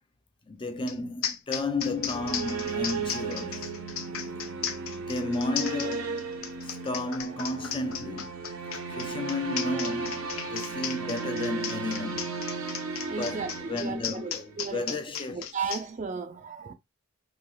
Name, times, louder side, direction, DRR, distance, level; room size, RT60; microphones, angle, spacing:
voice 1, 0.5-3.7 5.1-6.3 6.6-8.3 8.9-12.4 13.2-15.6, left 2 dB, 25° left, 0.5 m, -33 dB
sound 1, 0.9-1.0 1.2-15.8, left 9 dB, 75° left, 0.5 m, -35 dB
sound 2, 1.7-14.6, right 4 dB, 75° right, 0.7 m, -35 dB
voice 2, 13.1-15.0 15.3-16.7, right 5 dB, 35° right, 0.4 m, -35 dB
3.2 x 2.9 x 2.3 m
head